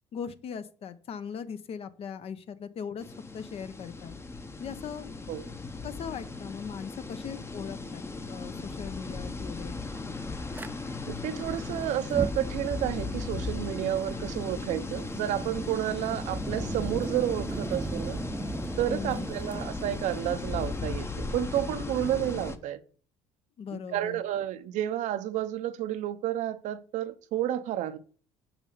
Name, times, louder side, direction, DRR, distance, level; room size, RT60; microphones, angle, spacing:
voice 1, 0.1-3.0 3.3-4.1 4.6-5.1 5.8-9.8 18.9-19.3 23.6-24.2, left 7 dB, 50° left, 0.8 m, -39 dB
sound 1, 3.0-22.6, left 3 dB, 20° left, 0.8 m, -37 dB
Fire, 10.5-10.7 12.0-21.0, right 3 dB, 15° right, 0.5 m, -38 dB
voice 2, 11.1-18.2 18.8-22.8 23.7-28.0, right 12 dB, 70° right, 0.8 m, -31 dB
5.9 x 5.5 x 6.7 m
supercardioid pair, 90°, 13 cm